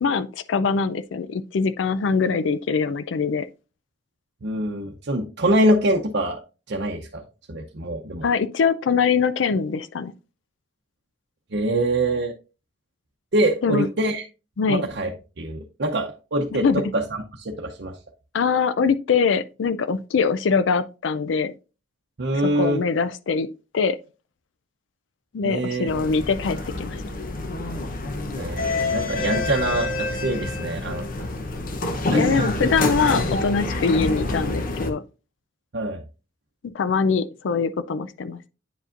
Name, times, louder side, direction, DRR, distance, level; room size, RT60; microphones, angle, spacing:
voice 1, 0.0-3.5 8.2-10.1 13.6-13.9 14.6-14.9 16.5-16.8 18.3-21.5 22.3-23.5 23.7-24.0 25.3-27.0 32.1-35.0 36.6-38.5, left 5 dB, 85° left, 0.4 m, -23 dB
voice 2, 4.4-6.4 6.7-8.2 11.5-12.3 13.3-14.2 14.7-15.1 15.4-16.6 16.9-17.0 17.4-18.0 22.2-22.8 25.4-26.0 28.4-31.1 32.1-32.7 35.7-36.0, right 1 dB, 65° right, 0.7 m, -24 dB
sound 1, 25.9-34.9, left 2 dB, 50° left, 0.8 m, -27 dB
9.1 x 5.0 x 2.5 m
head